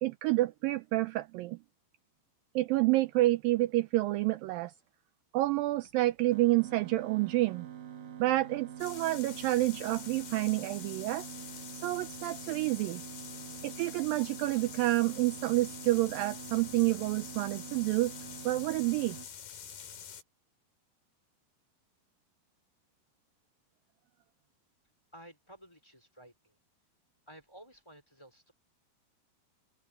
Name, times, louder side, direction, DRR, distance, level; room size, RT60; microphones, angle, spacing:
voice 1, 0.0-1.6 2.6-4.7 5.3-7.7 8.2-11.3 11.7-13.0 13.6-18.1 18.5-19.2, right 18 dB, 80° right, 2.2 m, -29 dB
sound 1, 6.3-19.3, right 9 dB, 45° right, 3.3 m, -46 dB
sound 2, 8.8-20.2, left 8 dB, 70° left, 4.6 m, -46 dB
voice 2, 25.1-26.6 27.3-28.5, right 1 dB, 5° left, 4.6 m, -54 dB
omnidirectional pair, 4.5 m